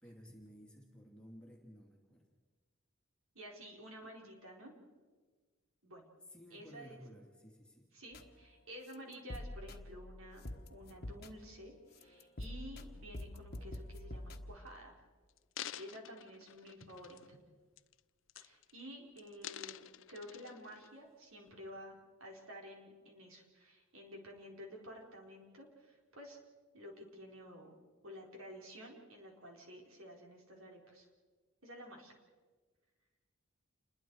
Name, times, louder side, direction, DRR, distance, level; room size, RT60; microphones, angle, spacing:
voice 1, 0.0-2.3 6.3-7.9, equal, 5° left, -1 dB, 2.8 m, -56 dB
voice 2, 3.3-4.7 5.8-6.0 6.5-7.0 7.9-10.4 10.7-14.9 15.8-17.4 18.3-26.4 26.7-27.7 28.0-31.1 31.6-32.1, equal, 85° right, 0 dB, 4.3 m, -52 dB
sound 1, 8.1-8.4 8.9-11.7 11.9-14.6, left 1 dB, 50° left, 1.3 m, -46 dB
sound 2, 14.5-14.7 15.3-17.4 17.8-18.0 18.3-18.9 19.2-20.9 21.5-21.6, left 11 dB, 70° left, 0.5 m, -49 dB
28.5 x 21.5 x 4.8 m, 1.4 s
head